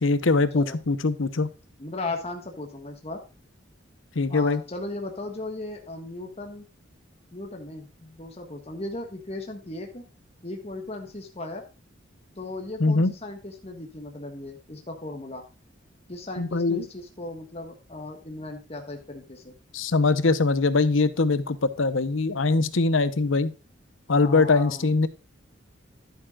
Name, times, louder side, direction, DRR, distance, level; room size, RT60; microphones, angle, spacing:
voice 1, 0.0-1.5 4.2-4.6 12.8-13.1 16.4-16.8 19.7-23.5 24.1-25.1, left 3 dB, 75° left, 14 dB, 0.8 m, -22 dB
voice 2, 1.8-3.2 4.3-6.7 7.3-10.0 10.4-11.6 12.4-15.4 16.1-19.6 24.1-24.9, left 2 dB, 30° left, 2 dB, 1.5 m, -36 dB
11.5 x 9.2 x 2.4 m, 0.32 s
head